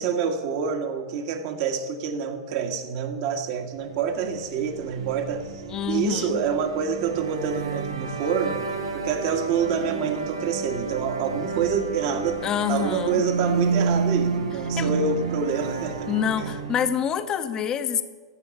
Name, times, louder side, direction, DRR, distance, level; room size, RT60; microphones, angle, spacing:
voice 1, 0.0-8.6 8.9-12.4 12.7-16.1 16.4-16.5, right 6 dB, 50° right, 5 dB, 1.8 m, -27 dB
sound 1, 4.0-17.0, right 4 dB, 80° right, 1.7 m, -30 dB
voice 2, 5.7-6.4 12.4-13.2 14.8-14.9 16.1-18.0, left 8 dB, 25° left, 10 dB, 0.9 m, -26 dB
15.0 x 6.1 x 8.8 m, 1.4 s
figure-of-eight pair, 100°, 2 cm